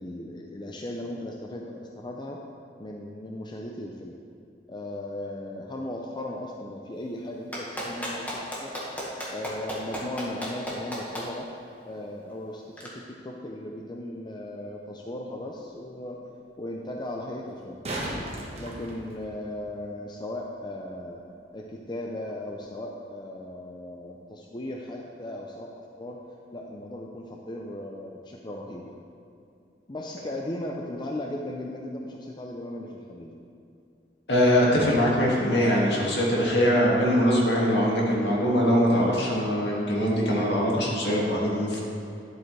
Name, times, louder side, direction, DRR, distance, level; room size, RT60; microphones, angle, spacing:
voice 1, 0.0-2.4 2.8-4.1 4.7-8.7 9.3-11.5 11.8-16.3 16.6-17.8 18.5-26.2 26.5-28.9 29.9-33.3, left 1 dB, 25° left, 0 dB, 0.6 m, -37 dB
Clapping, 7.5-11.2 12.8-12.9, equal, 10° left, 1.6 m, -33 dB
sound 1, 14.6-14.7 17.5-19.6 22.5-22.6, right 1 dB, 35° right, 1.4 m, -35 dB
voice 2, 34.3-41.8, equal, 70° left, -4 dB, 2.1 m, -22 dB
11.0 x 7.8 x 3.3 m, 2.6 s
head